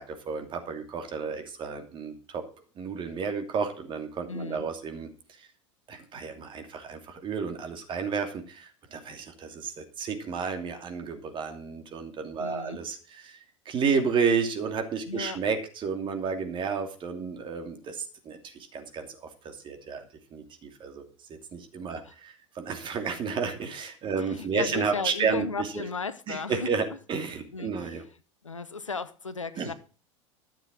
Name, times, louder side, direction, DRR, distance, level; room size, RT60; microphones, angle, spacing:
voice 1, 0.0-2.4 2.8-5.1 5.4-5.5 5.9-20.1 20.3-21.0 21.3-25.8 26.3-28.0 29.6-29.7, right 5 dB, 30° right, 2.8 m, -32 dB
voice 2, 4.3-4.7 12.4-12.8 15.1-15.4 22.0-22.1 24.1-26.7 27.5-28.0 28.4-29.7, left 4 dB, 85° left, 0.9 m, -35 dB
13.0 x 7.4 x 6.2 m
figure-of-eight pair, 80°, 16 cm